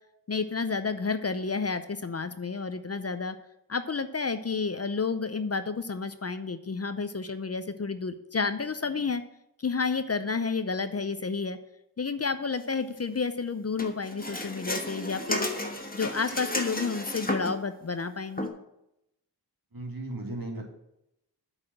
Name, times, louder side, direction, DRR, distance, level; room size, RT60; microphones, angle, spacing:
voice 1, 0.3-3.4 3.7-9.2 9.6-11.6 12.0-15.5 15.9-18.5, left 4 dB, 40° left, 11 dB, 0.6 m, -30 dB
sound 1, 13.8-17.7 18.4-18.5, left 1 dB, 20° left, 1.2 m, -33 dB
voice 2, 19.7-20.7, right 2 dB, 60° right, 0 dB, 2.3 m, -36 dB
8.4 x 4.9 x 7.6 m, 0.82 s
wide cardioid pair, 70°, 40 cm